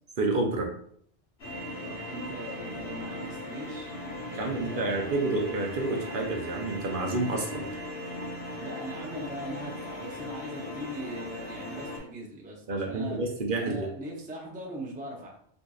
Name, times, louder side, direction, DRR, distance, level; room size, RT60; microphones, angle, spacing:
voice 1, 0.2-0.7 4.3-7.6 12.7-13.9, right 2 dB, 60° right, 1 dB, 0.7 m, -29 dB
sound 1, 1.4-12.0, left 1 dB, 75° left, 1.3 m, -38 dB
voice 2, 1.8-4.0 4.3-5.1 8.6-13.2 13.6-15.3, right 1 dB, 10° right, -1 dB, 0.4 m, -40 dB
4.4 x 2.6 x 2.3 m, 0.64 s
omnidirectional pair, 1.1 m